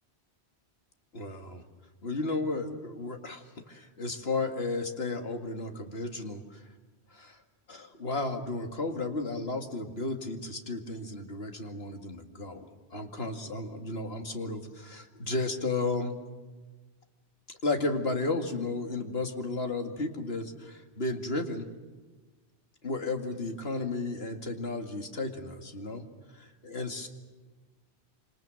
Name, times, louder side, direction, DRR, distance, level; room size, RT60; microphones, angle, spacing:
voice 1, 1.1-1.6 2.0-6.6 7.1-7.4 7.7-16.1 17.5-21.7 22.8-26.1 26.3-27.1, left 3 dB, 70° left, 4 dB, 2.5 m, -33 dB
27.0 x 26.5 x 7.7 m, 1.3 s
omnidirectional pair, 1.1 m